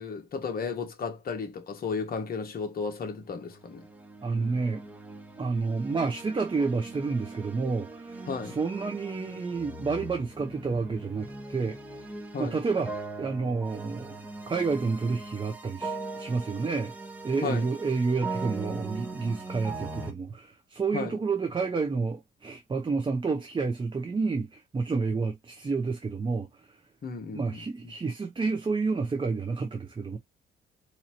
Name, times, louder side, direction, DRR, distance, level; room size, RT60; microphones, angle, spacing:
voice 1, 0.0-3.9 8.3-8.6 12.3-12.6 17.4-17.7 20.9-21.2 27.0-27.9, left 5 dB, 50° left, 1.3 m, -34 dB
sound 1, 3.3-20.1, right 3 dB, 10° right, 1.0 m, -40 dB
voice 2, 4.2-4.8 5.4-11.8 12.4-12.9 13.2-14.2 14.5-17.0 17.2-26.5 27.3-30.2, right 4 dB, 25° right, 0.7 m, -29 dB
4.1 x 2.8 x 2.9 m
cardioid pair, 90°, 20 cm